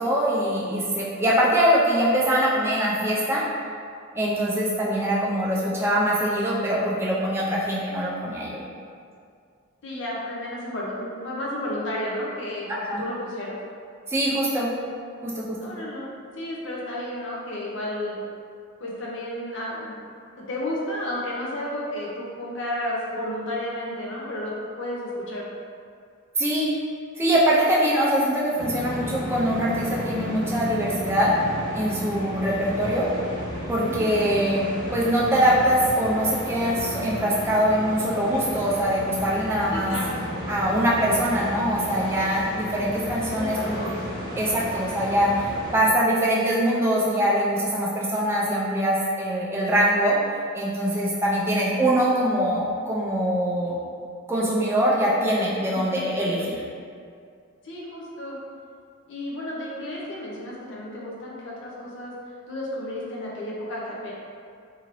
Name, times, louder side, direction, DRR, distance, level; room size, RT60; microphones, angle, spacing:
voice 1, 0.0-3.4 4.1-8.6 12.7-13.0 14.1-14.7 15.2-15.6 26.4-26.7 27.2-31.3 31.7-33.1 33.7-34.7 34.9-39.9 40.5-43.8 44.4-50.2 50.5-53.8 54.3-56.6, equal, 10° right, -5 dB, 0.4 m, -23 dB
voice 2, 9.8-13.6 15.6-18.2 18.8-20.1 20.3-25.5 33.8-34.1 39.7-40.2 43.3-44.0 55.7-56.1 57.6-58.4 59.1-62.1 62.5-64.1, left 1 dB, 60° left, -5 dB, 0.6 m, -32 dB
sound 1, 28.6-45.7, equal, 20° left, 0.7 m, -33 dB
2.8 x 2.6 x 3.0 m, 2.3 s
head